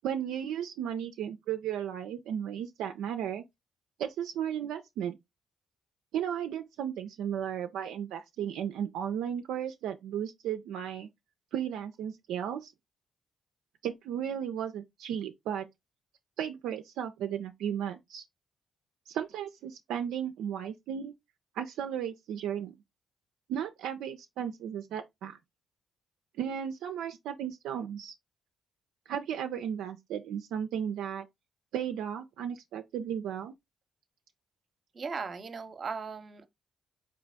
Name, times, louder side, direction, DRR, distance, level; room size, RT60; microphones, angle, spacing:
voice 1, 0.0-3.4 4.0-5.2 6.1-11.1 11.5-12.7 13.8-15.7 16.4-18.2 19.1-21.1 21.5-22.8 23.5-25.4 26.4-28.1 29.1-31.3 31.7-33.5, right 9 dB, 80° right, 0.3 m, -35 dB
voice 2, 34.9-36.5, right 5 dB, 45° right, 0.7 m, -37 dB
3.9 x 2.8 x 3.3 m
supercardioid pair, 50°, 0 cm